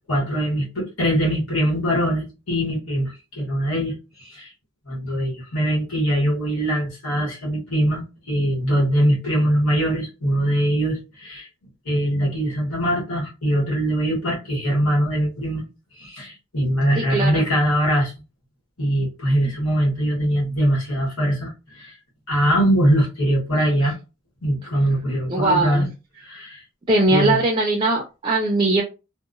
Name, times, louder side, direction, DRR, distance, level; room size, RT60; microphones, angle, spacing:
voice 1, 0.1-4.5 4.9-11.5 11.8-15.6 16.0-18.1 18.8-22.0 22.3-23.9 24.4-25.9 26.2-26.6 27.1-27.4, equal, 85° left, 1.3 m, -22 dB
voice 2, 17.0-17.4 25.3-25.9 26.9-28.8, right 2 dB, 20° right, 0.3 m, -20 dB
2.8 x 2.0 x 2.5 m
head